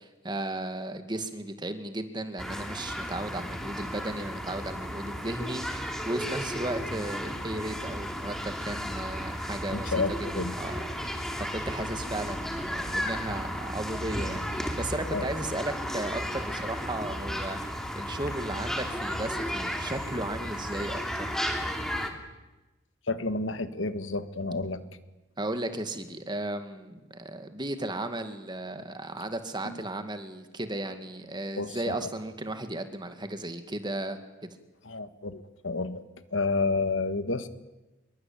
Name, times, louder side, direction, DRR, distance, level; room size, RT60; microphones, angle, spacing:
voice 1, 0.0-9.9 10.2-11.2 11.5-21.4 25.4-34.5, right 1 dB, 25° right, 8 dB, 2.2 m, -35 dB
sound 1, 2.4-22.1, equal, ahead, 2.9 m, -34 dB
sound 2, 7.9-15.5, equal, 60° right, 4.2 m, -53 dB
voice 2, 9.7-10.5 15.1-15.3 23.1-24.8 29.6-29.8 31.5-31.9 34.8-36.0 36.3-37.5, left 3 dB, 75° left, 11 dB, 1.6 m, -30 dB
26.0 x 22.5 x 8.9 m, 1.1 s
head